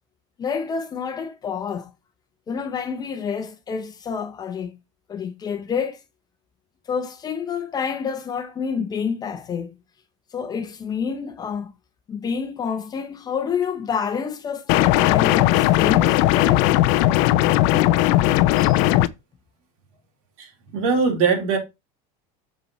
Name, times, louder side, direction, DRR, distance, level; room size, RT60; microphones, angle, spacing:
voice 1, 0.4-1.9 2.5-4.8 5.1-6.0 6.9-9.7 10.3-11.7 12.1-16.6 17.7-18.0, left 6 dB, 20° left, 0.8 m, -28 dB
sound 1, 14.7-19.1, left 15 dB, 60° left, 0.5 m, -17 dB
voice 2, 20.4-21.6, right 5 dB, 80° right, 3.5 m, -22 dB
6.9 x 5.4 x 4.1 m
cardioid pair, 160°, 18 cm